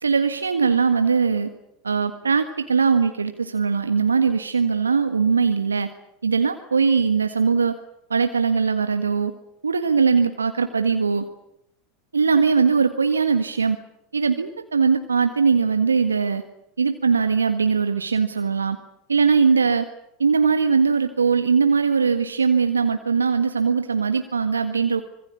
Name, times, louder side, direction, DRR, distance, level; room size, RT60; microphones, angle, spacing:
voice 1, 0.0-1.5 1.8-5.9 6.2-7.8 8.1-9.3 9.6-11.2 12.1-13.8 14.1-16.4 16.8-18.8 19.1-19.9 20.2-25.0, right 5 dB, 85° right, 8 dB, 1.6 m, -20 dB
25.5 x 22.5 x 8.5 m, 0.79 s
figure-of-eight pair, 85°, 0 cm